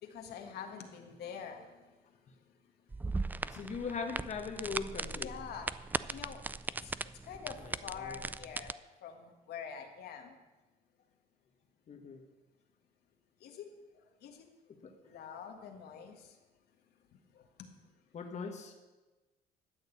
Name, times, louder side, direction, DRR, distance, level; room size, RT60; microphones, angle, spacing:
voice 1, 0.0-2.0 3.5-3.6 5.1-5.7 6.1-6.4 6.8-6.9 7.2-8.7 9.0-10.4 13.4-13.7 13.9-14.4 15.0-16.4 17.1-17.7, left 7 dB, 70° left, 4 dB, 1.7 m, -46 dB
sound 1, 2.9-8.7, right 3 dB, 10° right, 0.3 m, -39 dB
voice 2, 3.5-5.3 8.0-8.2 11.9-12.2 14.8-14.9 18.1-18.7, left 5 dB, 40° left, 4 dB, 1.4 m, -39 dB
12.5 x 6.6 x 8.4 m, 1.2 s
cardioid pair, 110°, 17 cm